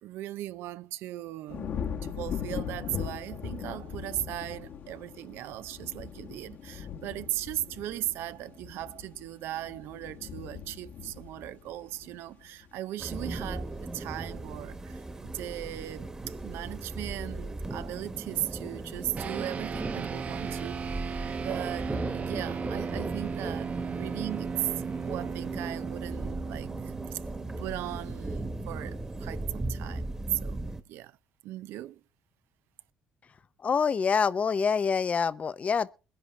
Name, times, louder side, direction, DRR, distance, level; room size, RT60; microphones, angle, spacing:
voice 1, 0.0-1.7 2.0-20.8 21.4-24.7 25.0-27.2 27.6-30.2 30.4-30.6 30.9-31.1 31.4-32.0, right 14 dB, 75° right, 0.6 m, -38 dB
sound 1, 1.5-12.8 13.2-13.7, left 7 dB, 60° left, 1.4 m, -39 dB
sound 2, 13.0-30.8, right 2 dB, 15° right, 1.3 m, -37 dB
sound 3, 19.2-28.8, right 6 dB, 35° right, 0.8 m, -37 dB
voice 2, 33.6-35.9, left 6 dB, 35° left, 0.6 m, -26 dB
21.5 x 10.5 x 3.3 m
cardioid pair, 105°, 4 cm